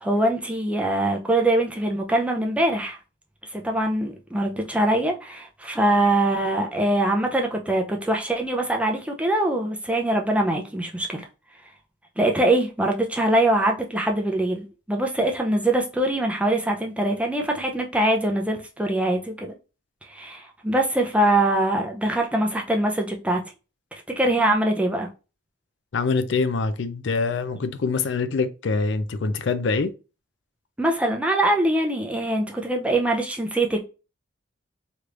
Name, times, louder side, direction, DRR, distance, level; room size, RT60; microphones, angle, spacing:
voice 1, 0.0-3.0 3.5-11.3 12.2-19.5 20.1-23.4 24.2-25.1 30.8-33.8, right 1 dB, 5° right, 0.5 m, -23 dB
voice 2, 25.9-29.9, left 4 dB, 65° left, 0.4 m, -24 dB
3.3 x 3.0 x 2.5 m
head